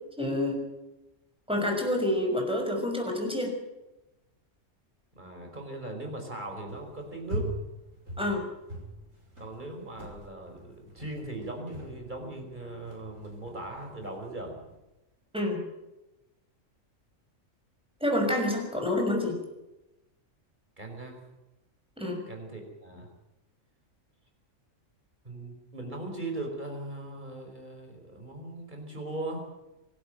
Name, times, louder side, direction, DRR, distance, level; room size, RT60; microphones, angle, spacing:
voice 1, 0.2-0.6 1.5-3.6 8.2-8.5 15.3-15.7 18.0-19.3 22.0-22.2, left 1 dB, 5° right, 2 dB, 6.1 m, -28 dB
voice 2, 5.1-7.5 9.4-14.6 20.8-21.2 22.3-23.1 25.2-29.5, right 2 dB, 35° right, 3 dB, 5.4 m, -39 dB
sound 1, 6.4-14.8, right 1 dB, 75° right, 6.2 m, -43 dB
25.5 x 12.5 x 9.1 m, 0.97 s
omnidirectional pair, 1.4 m